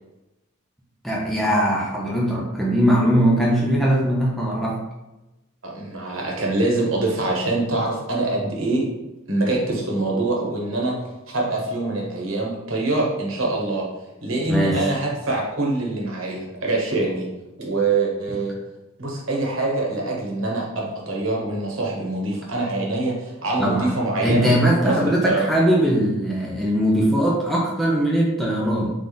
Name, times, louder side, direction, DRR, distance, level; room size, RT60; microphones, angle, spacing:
voice 1, 1.0-4.8 14.5-14.9 23.6-23.9 24.2-28.9, equal, ahead, -4 dB, 0.6 m, -20 dB
voice 2, 5.6-8.9 9.3-10.9 11.3-13.8 14.2-17.3 17.6-18.5 19.0-24.5 24.8-25.5, right 2 dB, 70° right, -2 dB, 1.2 m, -24 dB
3.7 x 3.5 x 4.0 m, 1.0 s
head